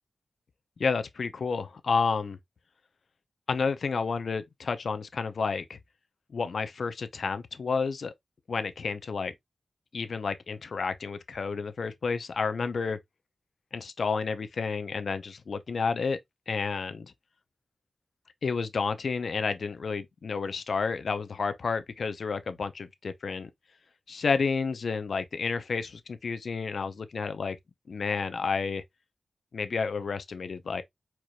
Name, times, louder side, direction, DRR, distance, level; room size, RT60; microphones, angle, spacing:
voice 1, 0.8-2.4 3.5-5.8 6.3-8.1 8.5-9.3 9.9-13.0 13.7-16.2 16.5-17.1 18.4-23.5 24.1-27.6 27.9-28.8 29.5-30.8, left 5 dB, 75° left, 0.7 m, -30 dB
4.8 x 4.5 x 2.3 m
wide cardioid pair, 95°, 0 cm